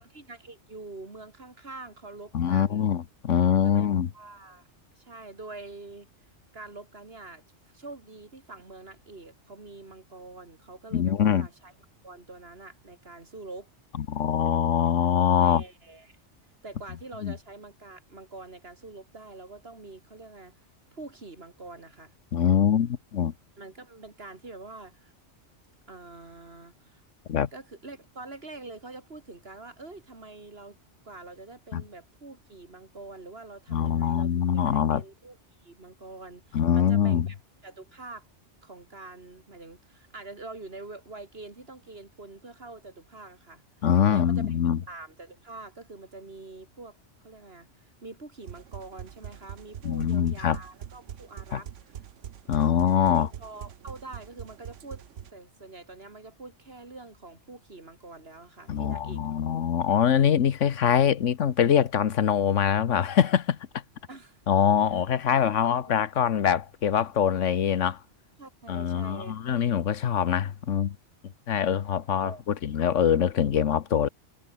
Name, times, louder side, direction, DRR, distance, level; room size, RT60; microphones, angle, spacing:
voice 1, 0.0-2.9 3.5-4.7 5.0-6.1 6.5-7.4 7.7-11.7 12.0-13.7 15.4-16.2 16.6-20.5 20.9-22.1 23.6-25.1 25.9-27.0 27.5-30.8 31.0-37.4 37.6-38.3 38.6-43.6 44.1-47.0 47.2-52.0 53.1-55.0 55.3-59.5 60.8-60.9 64.1-64.4 64.9-65.0 65.8-65.9 68.4-69.6 72.2-72.4, right 3 dB, 55° right, 3.3 m, -45 dB
voice 2, 2.3-4.1 10.9-11.5 14.0-15.6 17.2-17.3 22.3-23.3 27.3-27.5 31.7-31.8 33.7-35.0 36.5-37.3 43.8-44.8 49.8-50.6 51.5-51.6 52.5-53.3 58.7-63.8 64.5-68.0 68.7-71.0 71.5-74.1, left 8 dB, 85° left, 1.3 m, -24 dB
sound 1, 48.4-55.3, right 9 dB, 85° right, 1.2 m, -43 dB
omnidirectional pair, 1.2 m